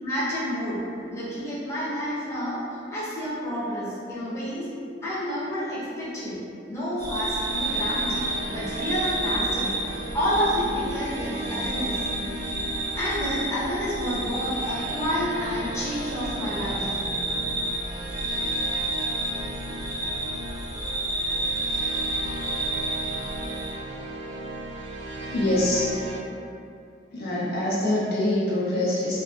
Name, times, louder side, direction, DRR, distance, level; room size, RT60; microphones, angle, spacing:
voice 1, 0.0-2.6 2.9-4.7 5.0-6.4 6.7-12.0 12.9-17.0, equal, 15° left, -11 dB, 0.7 m, -29 dB
sound 1, 7.0-23.7, right 2 dB, 25° right, 0.6 m, -31 dB
sound 2, 7.3-26.2, right 1 dB, 75° right, 0.4 m, -36 dB
voice 2, 25.3-25.9 27.1-29.2, left 1 dB, 60° left, -7 dB, 0.4 m, -24 dB
2.5 x 2.2 x 2.3 m, 2.5 s
head